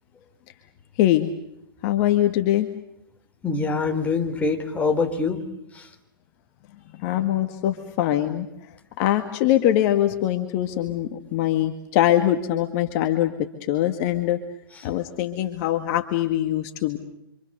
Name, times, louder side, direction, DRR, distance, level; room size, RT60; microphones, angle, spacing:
voice 1, 1.0-1.3 1.8-2.7 7.0-8.5 9.0-13.3 13.7-14.4 14.8-17.0, left 13 dB, 40° left, 6 dB, 1.9 m, -22 dB
voice 2, 3.4-5.4 5.7-5.9 14.7-14.9, left 4 dB, 10° left, 2 dB, 3.9 m, -25 dB
28.5 x 26.0 x 6.8 m, 0.80 s
hypercardioid pair, 130°, 12 cm